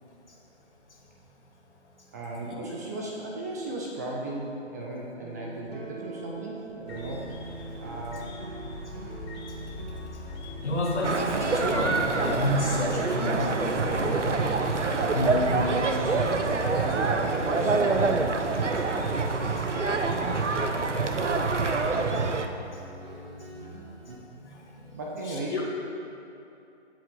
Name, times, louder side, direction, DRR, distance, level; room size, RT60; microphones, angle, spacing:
voice 1, 2.1-7.3 7.8-8.3 14.8-18.1 24.8-25.6, right 1 dB, 15° right, -2 dB, 0.6 m, -36 dB
sound 1, 5.2-24.2, right 3 dB, 50° right, 1.8 m, -44 dB
sound 2, 6.9-21.9, left 2 dB, 20° left, 0.9 m, -40 dB
voice 2, 10.6-14.2 15.1-15.4 19.0-20.8 21.1-21.2 23.5-23.8 24.4-25.0 25.3-25.6, left 1 dB, 70° left, -2 dB, 2.8 m, -31 dB
sound 3, 11.0-22.5, right 4 dB, 85° right, 1.0 m, -26 dB
16.5 x 8.0 x 3.8 m, 2.8 s
figure-of-eight pair, 145°, 35 cm